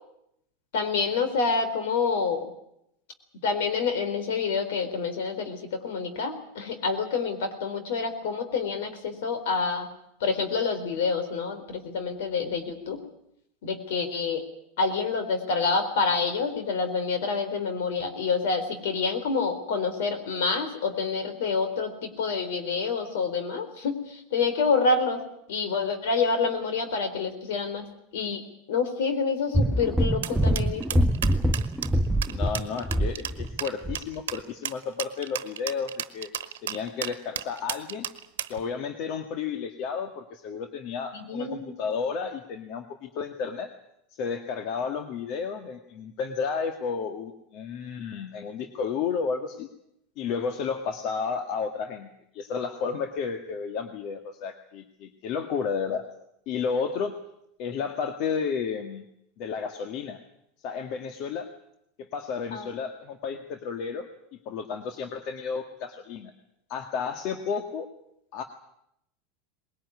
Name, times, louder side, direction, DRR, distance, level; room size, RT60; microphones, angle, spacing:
voice 1, 0.7-2.5 3.4-9.9 10.2-13.0 13.6-14.4 14.8-25.2 25.5-27.8 28.1-28.4 28.7-31.0 41.1-41.8 62.5-62.7, left 4 dB, 75° left, 8 dB, 3.9 m, -27 dB
sound 1, 29.5-33.6 33.8-34.0, right 1 dB, 10° right, 0.8 m, -24 dB
sound 2, 30.2-38.6, right 11 dB, 90° right, 1.2 m, -34 dB
voice 2, 32.2-36.3 36.6-38.1 38.5-43.7 44.1-49.7 50.2-56.0 56.5-57.2 57.6-59.1 59.4-60.2 60.6-61.5 62.0-64.1 64.5-66.3 66.7-67.9 68.3-68.4, left 6 dB, 55° left, 6 dB, 1.8 m, -32 dB
20.5 x 18.5 x 9.7 m, 0.79 s
hypercardioid pair, 110°, 0 cm